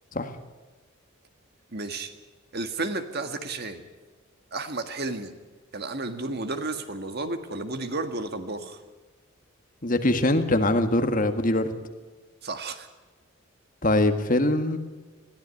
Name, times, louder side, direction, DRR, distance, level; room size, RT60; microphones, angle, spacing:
voice 1, 1.7-2.1 2.5-3.8 4.5-5.3 5.7-8.8 12.4-12.9, right 2 dB, 50° right, 8 dB, 1.7 m, -32 dB
voice 2, 9.8-11.7 13.8-14.8, left 1 dB, 40° left, 7 dB, 1.7 m, -22 dB
21.5 x 15.0 x 9.7 m, 1.3 s
head